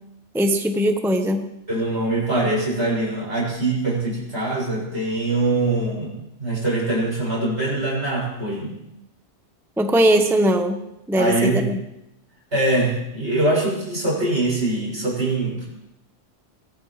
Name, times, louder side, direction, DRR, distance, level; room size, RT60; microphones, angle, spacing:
voice 1, 0.3-1.5 9.8-10.8 11.1-11.8, right 1 dB, ahead, 5 dB, 0.9 m, -19 dB
voice 2, 1.7-8.8 11.1-11.6 12.5-15.7, right 2 dB, 70° right, -4 dB, 7.2 m, -23 dB
22.5 x 19.5 x 3.2 m, 0.88 s
omnidirectional pair, 1.2 m